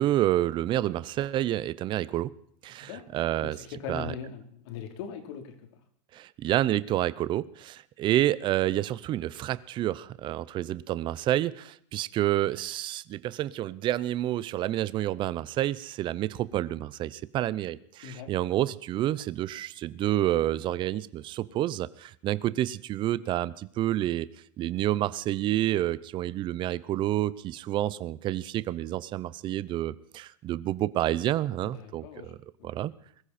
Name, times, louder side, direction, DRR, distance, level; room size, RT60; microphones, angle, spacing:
voice 1, 0.0-2.3 2.6-3.6 3.9-4.1 6.1-24.3 24.6-32.4 32.6-32.9, right 13 dB, 30° right, 18 dB, 0.7 m, -29 dB
voice 2, 2.8-5.6 18.0-18.3 31.6-32.3, left 7 dB, 60° left, 5 dB, 3.5 m, -40 dB
21.5 x 14.0 x 4.3 m, 0.63 s
supercardioid pair, 140°, 16 cm